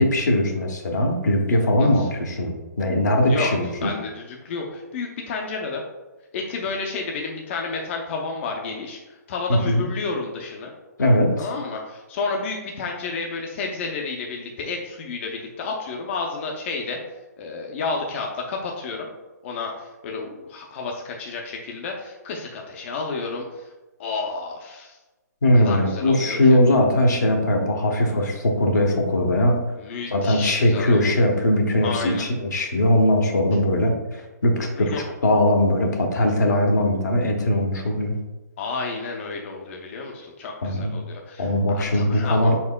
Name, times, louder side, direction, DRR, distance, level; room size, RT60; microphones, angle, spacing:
voice 1, 0.0-3.9 9.5-9.9 11.0-11.5 25.4-29.6 30.1-34.9 35.2-38.1 40.6-40.9 41.4-42.6, left 1 dB, 75° left, 1 dB, 1.0 m, -20 dB
voice 2, 3.3-5.8 6.3-9.0 9.3-10.7 11.4-17.0 17.4-19.1 19.4-23.7 24.0-25.0 25.5-26.6 29.8-31.1 31.8-32.2 34.7-35.0 38.6-41.5 41.7-42.6, left 4 dB, 45° left, 0 dB, 0.6 m, -31 dB
4.9 x 4.3 x 2.2 m, 1.1 s
figure-of-eight pair, 130°, 9 cm